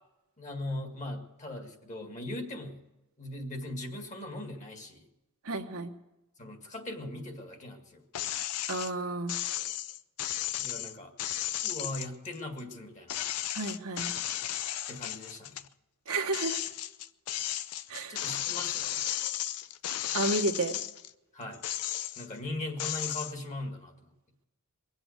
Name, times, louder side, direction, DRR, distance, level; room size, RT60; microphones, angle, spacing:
voice 1, 0.4-2.8 3.2-5.0 6.4-8.0 10.5-11.1 11.6-13.2 14.9-15.7 18.1-19.0 21.3-21.6 22.2-23.9, left 1 dB, 35° left, 4 dB, 2.0 m, -39 dB
voice 2, 5.4-5.9 8.7-9.3 13.5-14.2 16.1-16.6 17.9-18.2 20.1-20.8, right 2 dB, 70° right, 4 dB, 1.2 m, -31 dB
sound 1, 8.1-8.9 9.3-12.8 13.1-15.7 16.1-21.1 21.5-22.4 22.8-23.3, left 12 dB, 85° left, 0.5 m, -34 dB
22.0 x 7.9 x 8.1 m, 0.98 s
head